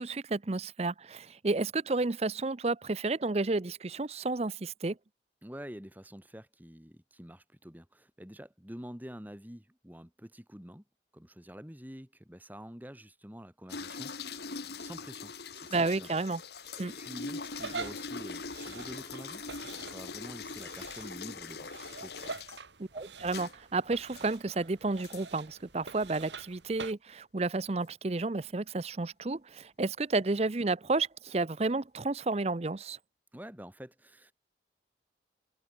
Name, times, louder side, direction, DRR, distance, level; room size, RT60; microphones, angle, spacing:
voice 1, 0.0-5.0 15.7-16.4 16.8-17.0 22.8-33.0, right 3 dB, 35° right, 0.6 m, -31 dB
voice 2, 5.4-10.8 11.1-14.5 14.8-16.1 16.7-19.4 19.8-22.4 33.3-34.3, equal, 10° right, 2.5 m, -47 dB
sound 1, 13.7-22.6 23.3-23.5 24.2-24.4 25.0-25.2 26.0-26.2, left 4 dB, 65° left, 1.9 m, -42 dB
sound 2, 17.5-26.9, right 4 dB, 80° right, 2.3 m, -46 dB
head